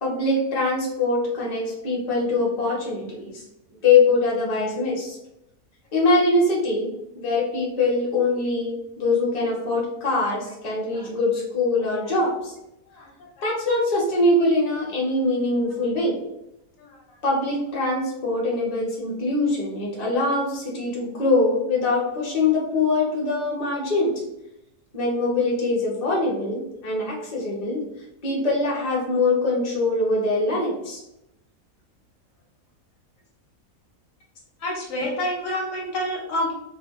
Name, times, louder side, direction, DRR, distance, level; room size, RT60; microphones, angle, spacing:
voice 1, 0.0-3.4 3.8-5.2 5.9-12.5 13.4-16.2 17.2-24.2 24.9-27.8 28.2-31.0, left 2 dB, 40° left, -4 dB, 0.6 m, -23 dB
voice 2, 12.9-13.3 16.8-17.0 34.6-36.5, left 1 dB, 70° left, -2 dB, 1.0 m, -28 dB
2.6 x 2.2 x 2.3 m, 0.86 s
omnidirectional pair, 1.5 m